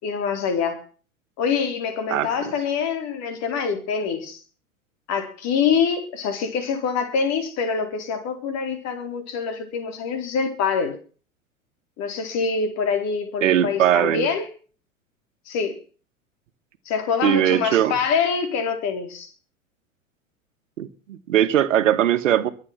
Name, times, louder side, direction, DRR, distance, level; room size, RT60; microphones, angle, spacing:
voice 1, 0.0-0.8 1.4-4.4 5.1-10.9 12.0-14.5 15.5-15.8 16.9-19.3, left 6 dB, 40° left, 4.3 m, -25 dB
voice 2, 2.1-2.5 13.4-14.3 17.2-17.9 20.8-22.5, right 11 dB, 65° right, 1.8 m, -20 dB
23.0 x 7.7 x 5.8 m
figure-of-eight pair, 90°, 41 cm